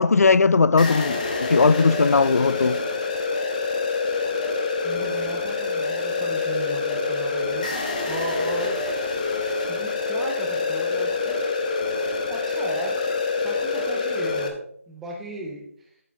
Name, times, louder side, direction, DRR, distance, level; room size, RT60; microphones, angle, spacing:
voice 1, 0.0-2.9, left 4 dB, 80° left, 0.4 m, -18 dB
sound 1, 0.8-14.5, left 4 dB, 30° left, 1.1 m, -26 dB
voice 2, 4.8-8.8 9.7-11.6 12.1-13.0 13.4-14.6 14.9-15.9, right 1 dB, ahead, 0.4 m, -35 dB
11.5 x 7.6 x 3.4 m
figure-of-eight pair, 175°, 8 cm